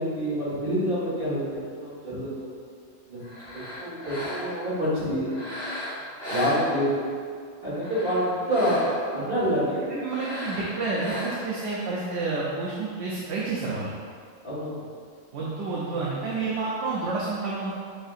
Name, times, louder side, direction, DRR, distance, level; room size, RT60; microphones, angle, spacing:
voice 1, 0.0-1.4 1.7-2.5 3.1-3.2 3.8-5.3 6.3-7.1 7.6-9.8 14.4-14.8, equal, 45° right, -9 dB, 1.7 m, -27 dB
sound 1, 3.2-4.7 5.3-7.1 7.7-9.2 10.0-11.6, equal, 35° left, 1.6 m, -36 dB
voice 2, 9.9-13.9 15.3-17.7, right 3 dB, 65° right, -5 dB, 0.8 m, -29 dB
7.4 x 2.7 x 2.4 m, 2.1 s
omnidirectional pair, 1.3 m